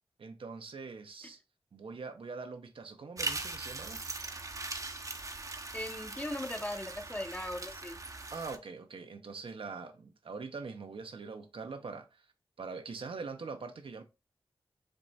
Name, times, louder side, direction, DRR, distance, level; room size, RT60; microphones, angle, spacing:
voice 1, 0.2-1.4 1.7-4.0 8.3-12.2 12.6-14.0, right 4 dB, 70° right, 0.7 m, -43 dB
sound 1, 3.2-8.6, right 3 dB, 35° right, 0.7 m, -40 dB
voice 2, 5.7-8.0, left 1 dB, 15° left, 0.7 m, -38 dB
5.3 x 3.3 x 2.8 m
cardioid pair, 60°, 9 cm